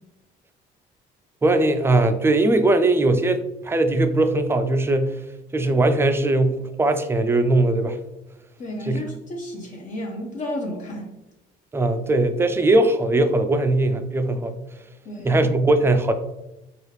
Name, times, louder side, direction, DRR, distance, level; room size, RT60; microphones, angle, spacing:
voice 1, 1.4-5.2 5.5-8.0 8.8-9.0 11.7-14.6 15.2-16.1, right 2 dB, 15° right, 8 dB, 0.4 m, -20 dB
voice 2, 8.6-11.1 15.1-15.5, left 1 dB, 50° left, -1 dB, 0.7 m, -32 dB
4.7 x 2.4 x 3.2 m, 0.94 s
cardioid pair, 110°, 17 cm